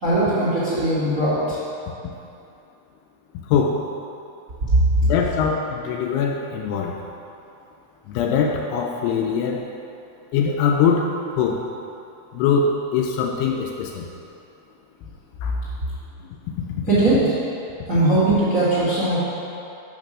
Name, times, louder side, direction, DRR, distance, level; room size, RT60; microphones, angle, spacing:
voice 1, 0.0-1.6 16.9-17.3 17.9-19.2, right 2 dB, 50° right, -11 dB, 0.9 m, -20 dB
voice 2, 3.5-3.9 5.0-7.0 8.1-9.7 10.3-11.7 12.3-14.1 15.4-15.6, left 6 dB, 85° left, 1 dB, 2.4 m, -22 dB
6.7 x 6.0 x 6.1 m, 2.7 s
omnidirectional pair, 4.9 m